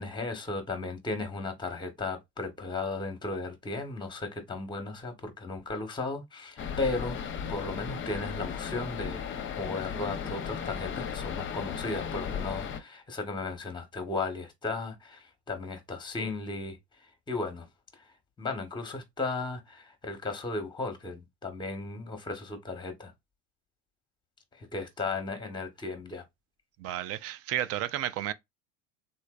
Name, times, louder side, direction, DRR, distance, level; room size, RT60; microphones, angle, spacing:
voice 1, 0.0-17.7 17.9-23.1 24.5-26.2, left 3 dB, 10° left, 1.0 m, -35 dB
sound 1, 6.6-12.8, left 7 dB, 30° left, 0.7 m, -36 dB
voice 2, 26.8-28.3, right 12 dB, 40° right, 0.4 m, -32 dB
3.2 x 2.8 x 2.3 m
hypercardioid pair, 80°, 39 cm